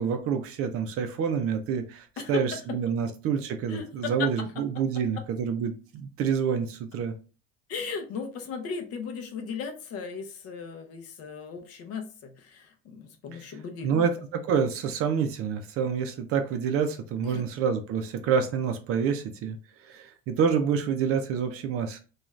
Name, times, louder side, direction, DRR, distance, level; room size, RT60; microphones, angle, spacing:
voice 1, 0.0-7.1 13.3-13.4 13.8-19.6 19.8-22.0, right 7 dB, 45° right, 7 dB, 0.4 m, -27 dB
voice 2, 2.2-2.6 3.7-4.3 7.7-14.1 17.2-17.4, left 5 dB, 45° left, 5 dB, 0.6 m, -36 dB
2.5 x 2.3 x 3.1 m, 0.36 s
cardioid pair, 150°, 33 cm